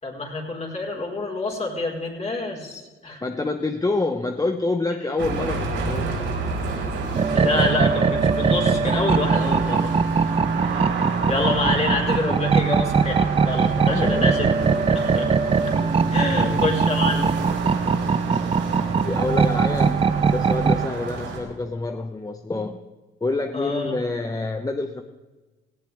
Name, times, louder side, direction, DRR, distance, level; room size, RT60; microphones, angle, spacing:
voice 1, 0.0-3.2 7.3-9.9 10.7-10.9 11.2-14.5 14.9-15.3 15.6-15.7 16.1-17.3 23.5-23.9, left 2 dB, 35° left, -1 dB, 4.3 m, -27 dB
voice 2, 3.2-6.3 11.2-11.3 13.6-14.8 16.3-16.6 19.0-22.8 23.2-25.0, left 3 dB, 15° left, 7 dB, 0.8 m, -27 dB
sound 1, 5.2-21.4, right 3 dB, 80° right, 5.1 m, -30 dB
sound 2, 7.1-20.9, right 5 dB, 30° right, 0.6 m, -21 dB
18.0 x 16.5 x 3.4 m, 1.2 s
cardioid pair, 90°, 20 cm